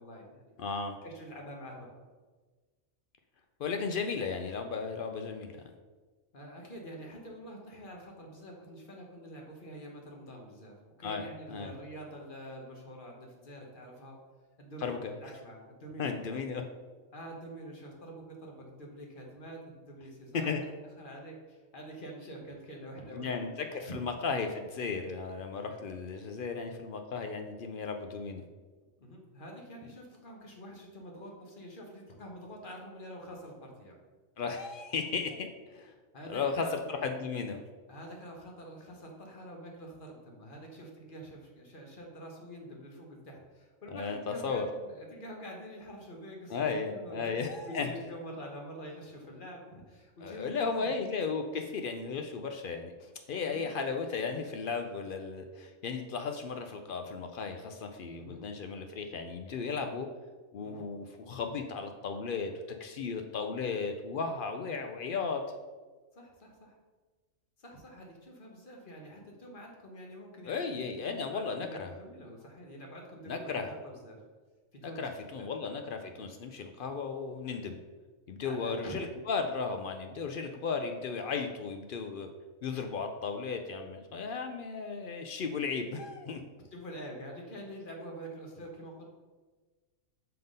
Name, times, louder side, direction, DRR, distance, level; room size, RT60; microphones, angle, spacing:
voice 1, 0.0-0.5 1.0-2.0 6.3-14.2 14.6-16.1 17.1-20.6 21.0-24.0 29.0-34.0 36.1-37.0 37.9-47.3 47.7-50.9 53.4-53.7 58.2-58.4 59.7-59.8 60.6-60.8 64.6-64.8 66.1-66.8 67.6-70.7 71.0-74.2 74.7-75.5 78.4-78.9 86.7-89.0, equal, 40° left, 0 dB, 1.1 m, -46 dB
voice 2, 0.6-0.9 3.6-5.5 11.0-11.7 14.8-15.1 16.0-16.6 20.3-20.6 23.1-28.4 34.4-35.9 36.3-37.6 43.9-44.7 46.5-47.9 50.2-60.1 60.5-65.4 70.5-72.0 73.2-73.7 74.8-77.7 78.3-82.3 82.6-86.4, left 5 dB, 70° left, 6 dB, 0.5 m, -35 dB
5.7 x 3.7 x 5.3 m, 1.3 s
omnidirectional pair, 1.4 m